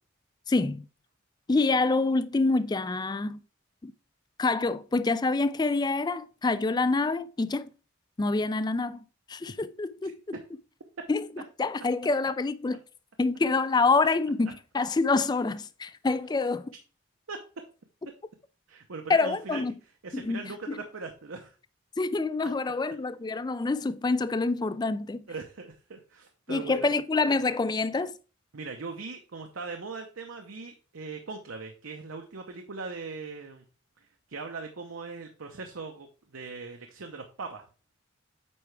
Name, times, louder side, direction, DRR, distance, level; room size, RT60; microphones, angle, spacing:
voice 1, 0.5-0.9 1.5-3.4 3.8-3.9 4.4-7.7 8.2-9.0 9.3-10.2 11.1-11.3 11.6-12.8 13.2-16.7 19.1-19.7 20.1-20.4 20.7-20.8 22.0-25.2 26.5-28.1, left 3 dB, 20° left, 0.3 m, -26 dB
voice 2, 10.0-10.4 17.3-17.6 18.7-19.6 20.0-21.5 25.3-26.9 28.5-33.6 34.0-37.6, right 4 dB, 80° right, 0.8 m, -40 dB
8.5 x 4.7 x 3.3 m
head